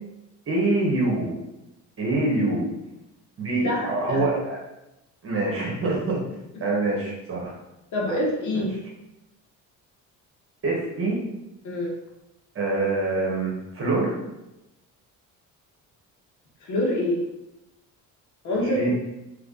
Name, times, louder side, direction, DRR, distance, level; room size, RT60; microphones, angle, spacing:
voice 1, 0.5-1.3 2.0-2.7 3.4-4.6 5.2-6.2 6.6-7.5 8.1-8.2 8.5-8.7 10.6-11.2 12.5-14.1 18.5-18.9, right 2 dB, 40° right, -3 dB, 1.5 m, -25 dB
voice 2, 3.6-4.3 7.9-8.7 11.6-11.9 16.6-17.2 18.4-18.9, left 1 dB, 60° left, -2 dB, 1.2 m, -26 dB
3.4 x 3.2 x 4.0 m, 0.92 s
cardioid pair, 105°, 33 cm